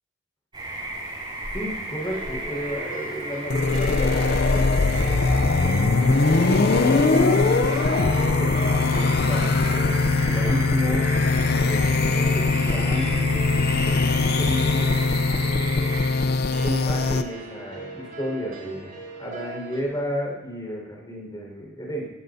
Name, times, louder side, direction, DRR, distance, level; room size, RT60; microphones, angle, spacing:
sound 1, 0.5-16.1, right 2 dB, 25° right, 5.3 m, -34 dB
voice 1, 1.5-5.8 6.4-11.1 11.5-13.1 13.5-15.0 15.4-16.0 16.6-22.1, equal, 20° left, -2 dB, 5.0 m, -33 dB
sound 2, 2.0-19.8, right 1 dB, 45° right, 5.6 m, -39 dB
sound 3, 3.5-17.2, left 3 dB, 55° left, 0.6 m, -21 dB
18.0 x 14.5 x 2.8 m, 1.1 s
head